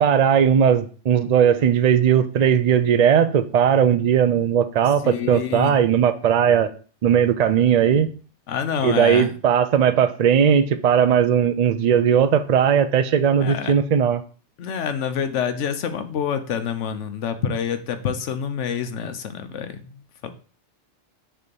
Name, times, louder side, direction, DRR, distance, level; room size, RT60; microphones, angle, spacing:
voice 1, 0.0-6.7 7.0-8.1 8.8-14.2, right 8 dB, 70° right, 10 dB, 0.3 m, -18 dB
voice 2, 5.0-5.7 8.5-9.3 13.4-13.7 14.6-20.3, left 7 dB, 80° left, 9 dB, 1.0 m, -27 dB
6.8 x 3.4 x 5.2 m, 0.40 s
omnidirectional pair, 1.2 m